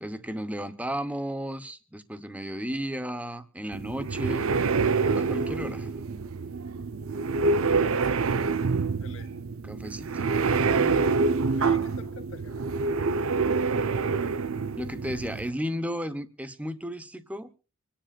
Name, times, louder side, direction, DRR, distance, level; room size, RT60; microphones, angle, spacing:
voice 1, 0.0-4.4 5.2-5.9 9.7-11.0 14.8-17.5, equal, 5° right, 9 dB, 0.9 m, -34 dB
sound 1, 3.7-15.5, right 4 dB, 85° right, 0.6 m, -26 dB
voice 2, 7.8-8.4 9.0-9.3 11.3-12.7, left 4 dB, 70° left, 4 dB, 2.0 m, -48 dB
26.0 x 10.0 x 2.4 m, 0.35 s
head